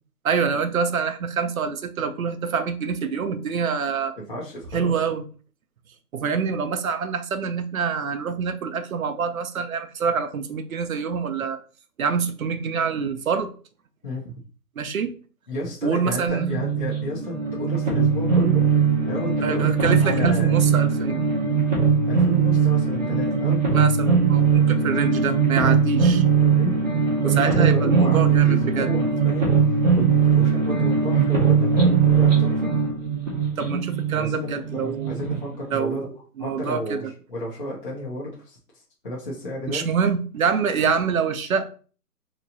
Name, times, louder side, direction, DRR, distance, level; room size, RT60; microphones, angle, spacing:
voice 1, 0.2-4.2 4.7-5.2 6.1-11.6 12.0-13.5 14.8-15.1 15.8-16.5 19.4-21.2 23.7-26.2 27.2-28.9 33.6-35.2 35.6-36.0 36.4-37.0 39.7-41.7, right 6 dB, 60° right, 9 dB, 0.6 m, -25 dB
voice 2, 4.2-4.9 14.0-14.4 15.5-18.7 19.1-20.6 22.1-23.6 26.5-26.8 27.2-32.7 34.1-36.0 36.4-39.9 40.8-40.9, left 1 dB, 30° left, -6 dB, 0.8 m, -32 dB
sound 1, 16.3-35.4, right 6 dB, 25° right, 0.8 m, -20 dB
2.9 x 2.3 x 3.9 m, 0.39 s
hypercardioid pair, 170°, 48 cm